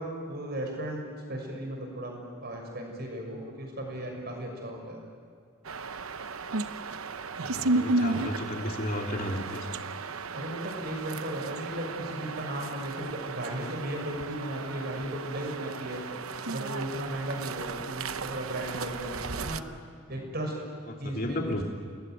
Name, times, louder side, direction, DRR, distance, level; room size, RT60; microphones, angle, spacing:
voice 1, 0.0-5.0 7.4-7.9 10.3-16.0 16.5-19.6 20.1-20.5 21.0-21.4, right 1 dB, 50° right, 2 dB, 6.5 m, -36 dB
sound 1, 5.6-19.6, right 3 dB, 90° right, 0.9 m, -34 dB
voice 2, 7.4-9.7 20.9-21.6, left 1 dB, 45° left, 2 dB, 3.0 m, -33 dB
29.0 x 20.5 x 9.4 m, 2.1 s
head